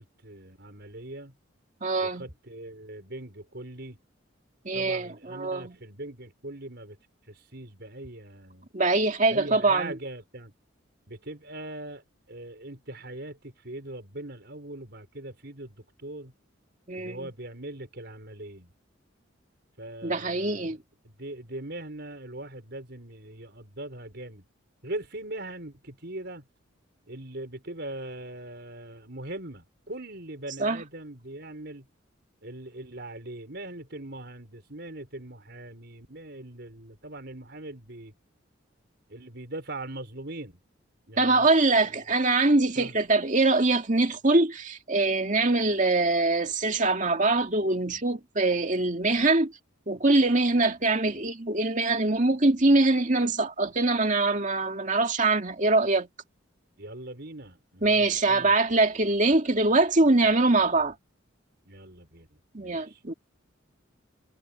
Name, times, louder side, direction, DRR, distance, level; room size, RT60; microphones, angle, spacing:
voice 1, 0.0-1.3 2.0-4.0 4.7-7.0 7.3-8.7 9.3-10.5 11.1-16.3 17.0-18.7 19.8-20.8 21.0-24.4 24.8-26.4 27.1-31.9 32.4-38.1 39.1-40.5 41.1-41.7 42.7-43.0 56.8-58.6 61.7-62.3 62.6-63.0, right 1 dB, 55° right, 5.2 m, -41 dB
voice 2, 1.8-2.3 4.7-5.8 8.7-9.9 16.9-17.3 20.0-20.8 30.6-30.8 41.2-49.5 49.9-56.1 57.8-60.9 62.5-63.1, right 2 dB, 40° right, 2.3 m, -23 dB
head